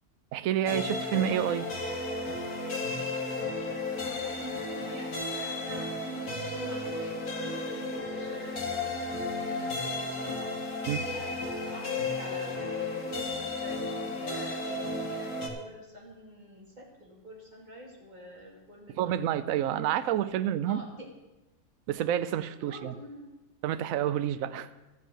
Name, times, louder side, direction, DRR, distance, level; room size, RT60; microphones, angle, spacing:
voice 1, 0.3-1.7 10.9-11.0 18.9-20.8 21.9-22.9 23.6-24.7, right 11 dB, 75° right, 12 dB, 1.0 m, -29 dB
sound 1, 0.7-15.5, left 2 dB, 80° left, 2.0 m, -33 dB
voice 2, 3.9-8.9 9.3-10.4 11.1-13.2 13.5-19.1 20.7-21.1 22.7-23.3, right 1 dB, 30° right, -2 dB, 2.6 m, -47 dB
13.5 x 5.5 x 7.6 m, 1.1 s
omnidirectional pair, 1.5 m